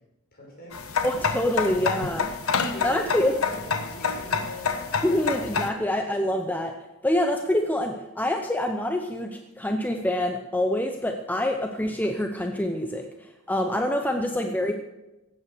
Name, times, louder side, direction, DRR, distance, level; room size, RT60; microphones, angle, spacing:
voice 1, 0.3-0.7 2.1-4.7 5.1-5.2 5.7-5.8 6.2-6.3 14.1-14.5, left 1 dB, 45° left, -2 dB, 5.7 m, -43 dB
sound 1, 0.7-5.7, left 5 dB, 70° left, 1.2 m, -28 dB
voice 2, 1.0-2.3 2.8-3.3 5.0-6.8 7.0-14.7, left 1 dB, 10° left, 5 dB, 0.7 m, -26 dB
16.0 x 9.0 x 6.7 m, 1.0 s
head